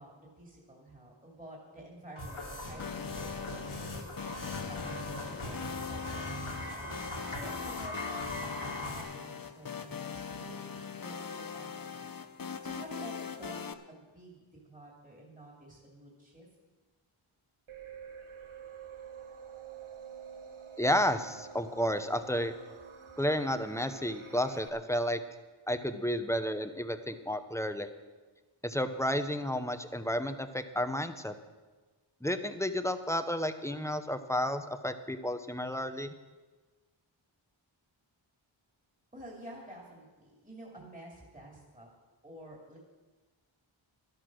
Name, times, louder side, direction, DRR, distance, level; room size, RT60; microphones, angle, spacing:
voice 1, 0.0-4.1 4.7-6.9 7.3-12.2 12.6-16.5 39.1-41.9 42.2-42.8, right 1 dB, 15° right, -2 dB, 2.7 m, -50 dB
sound 1, 2.2-9.0, left 1 dB, 80° left, 2.4 m, -40 dB
sound 2, 2.8-13.7, left 6 dB, 45° left, 0.8 m, -41 dB
sound 3, 17.7-24.7, right 7 dB, 80° right, 1.2 m, -48 dB
voice 2, 20.8-22.5 23.2-25.2 25.7-27.9 28.6-31.3 32.2-36.1, equal, 5° left, 9 dB, 0.8 m, -31 dB
12.5 x 11.5 x 6.2 m, 1.3 s
wide cardioid pair, 60°, 49 cm